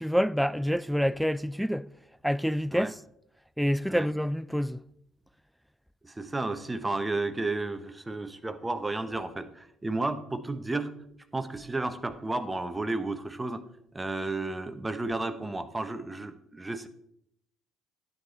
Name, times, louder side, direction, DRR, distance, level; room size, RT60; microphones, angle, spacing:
voice 1, 0.0-1.9 2.2-3.0 3.6-4.8, equal, ahead, 0.3 m, -27 dB
voice 2, 6.0-10.9 11.3-13.6 13.9-16.9, right 2 dB, 15° right, 0.9 m, -32 dB
9.6 x 8.2 x 4.2 m
hypercardioid pair, 50°, 0 cm